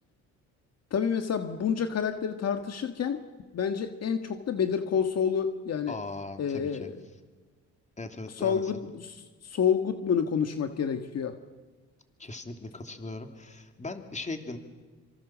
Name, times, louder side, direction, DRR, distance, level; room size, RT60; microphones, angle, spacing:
voice 1, 0.9-3.2 3.5-6.0 6.4-7.0 8.4-11.3, left 7 dB, 55° left, 7 dB, 1.7 m, -28 dB
voice 2, 5.9-6.9 8.0-8.7 12.2-14.6, left 3 dB, 25° left, 6 dB, 2.9 m, -39 dB
26.0 x 25.0 x 7.4 m, 1.3 s
cardioid pair, 90°, 30 cm